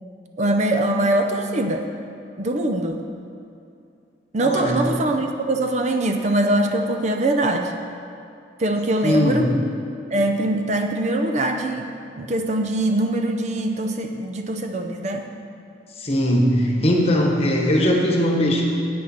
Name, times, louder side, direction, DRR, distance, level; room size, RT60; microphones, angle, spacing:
voice 1, 0.4-1.9 2.4-3.0 4.3-7.8 8.6-9.5 10.1-15.3, right 1 dB, 40° right, 5 dB, 0.5 m, -22 dB
voice 2, 4.4-4.8 9.0-9.5 16.0-18.6, equal, 35° left, 0 dB, 1.2 m, -20 dB
10.0 x 8.6 x 4.3 m, 2.5 s
head